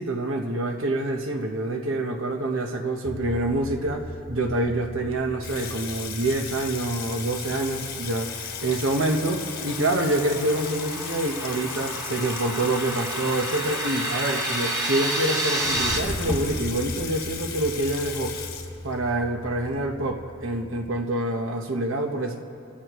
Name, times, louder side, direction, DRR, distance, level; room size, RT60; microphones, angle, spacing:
voice 1, 0.0-18.4 18.8-22.4, right 2 dB, 65° right, 2 dB, 1.2 m, -26 dB
sound 1, 3.0-21.0, left 2 dB, 15° left, 0.4 m, -40 dB
Water tap faucet / Sink (filling or washing), 5.4-19.2, left 7 dB, 45° left, 1.4 m, -36 dB
sound 2, 8.3-16.0, right 1 dB, 15° right, 1.4 m, -31 dB
28.5 x 13.0 x 3.1 m, 2.6 s
head